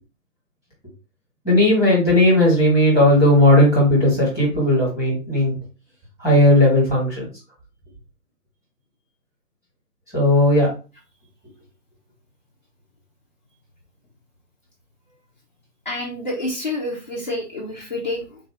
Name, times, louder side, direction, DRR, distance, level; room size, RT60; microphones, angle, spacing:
voice 1, 1.4-5.5 6.2-7.3 10.1-10.7, left 1 dB, 5° right, -7 dB, 1.5 m, -16 dB
voice 2, 15.9-18.4, left 1 dB, 30° left, -3 dB, 0.5 m, -28 dB
3.9 x 2.8 x 3.6 m, 0.33 s
hypercardioid pair, 160°, 47 cm